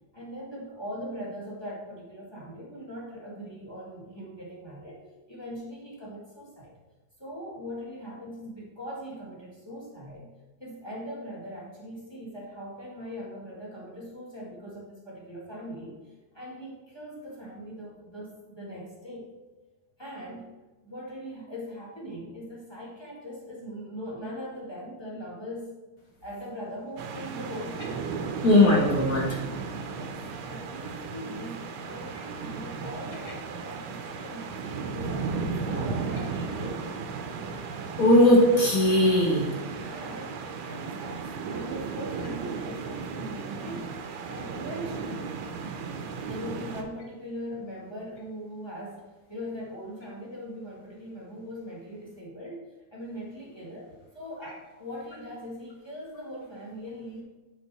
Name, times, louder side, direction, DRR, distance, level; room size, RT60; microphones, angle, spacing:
voice 1, 0.1-5.0 5.3-6.7 7.2-10.3 10.6-19.3 20.0-20.5 20.8-25.7 26.2-28.2 29.8-36.9 39.9-40.3 40.6-43.9 44.3-45.3 46.2-49.0 49.3-57.2, equal, 15° left, -4 dB, 1.6 m, -40 dB
sound 1, 27.0-46.8, right 5 dB, 85° right, 1.6 m, -35 dB
voice 2, 28.4-29.4 35.7-35.8 38.0-39.5, left 1 dB, 45° left, -3 dB, 1.7 m, -19 dB
7.2 x 5.3 x 4.1 m, 1.2 s
omnidirectional pair, 2.3 m